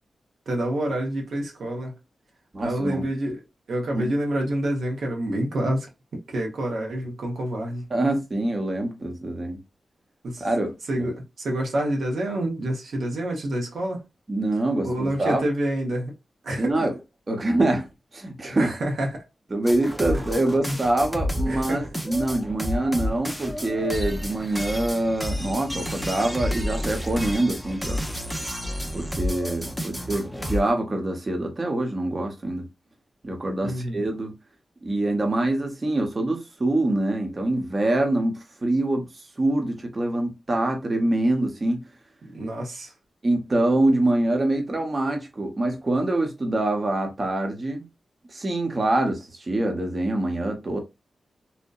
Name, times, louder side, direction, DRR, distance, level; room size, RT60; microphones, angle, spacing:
voice 1, 0.5-2.0 2.6-3.4 3.7-5.9 6.3-7.8 10.2-10.5 10.9-14.0 14.8-16.1 16.4-16.9 18.6-19.2 20.1-20.2 20.6-20.8 21.5-21.9 33.6-34.0 42.2-42.9, right 1 dB, 80° right, 0.7 m, -27 dB
voice 2, 2.5-3.1 3.9-4.1 7.9-9.6 10.4-10.7 11.0-11.1 14.3-15.4 16.6-16.9 17.3-17.9 18.1-18.7 19.5-28.0 28.9-32.7 33.2-34.3 34.8-39.1 39.4-41.8 43.2-47.8 48.3-50.8, right 1 dB, 40° right, 0.8 m, -25 dB
sound 1, 19.7-30.7, equal, ahead, 0.5 m, -30 dB
2.7 x 2.1 x 2.3 m
cardioid pair, 65°, 0 cm